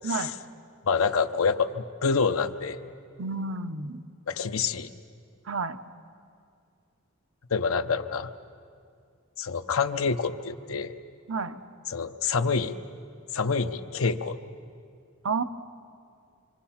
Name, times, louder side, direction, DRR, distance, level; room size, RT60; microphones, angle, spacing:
voice 1, 0.9-2.8 4.3-4.9 7.5-8.3 9.4-10.9 11.9-12.7 13.3-14.4, left 5 dB, 90° left, 8 dB, 0.8 m, -27 dB
voice 2, 3.2-4.0 5.4-5.8 11.3-11.6 15.2-15.4, right 4 dB, 75° right, 10 dB, 0.8 m, -30 dB
26.0 x 25.0 x 5.8 m, 2.3 s
head